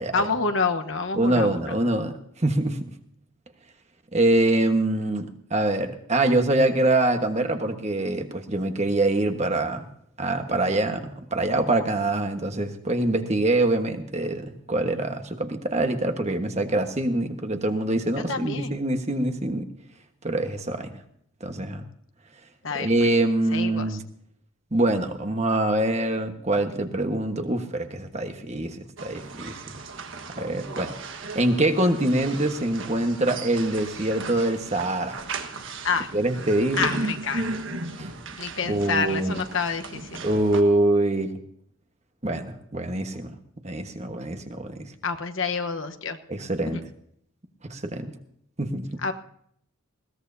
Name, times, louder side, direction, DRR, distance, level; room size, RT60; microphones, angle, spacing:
voice 1, 0.1-1.7 18.3-18.8 22.6-23.1 23.5-24.0 35.8-36.1 36.8-37.5 38.4-40.2 45.0-46.2 46.7-46.8 49.0-49.1, left 4 dB, 60° left, 7 dB, 1.1 m, -28 dB
voice 2, 1.2-2.9 4.1-9.8 10.2-19.7 20.2-21.0 21.4-21.8 22.8-24.0 24.7-29.6 30.4-31.0 31.3-35.2 36.1-37.0 38.0-38.1 38.7-39.4 40.2-41.3 42.2-43.3 43.6-44.9 46.3-46.8 47.7-48.1 48.6-48.9, right 2 dB, 30° right, 6 dB, 1.3 m, -24 dB
sound 1, 29.0-40.6, right 3 dB, 60° right, 1.4 m, -36 dB
21.0 x 17.5 x 2.7 m, 0.68 s
head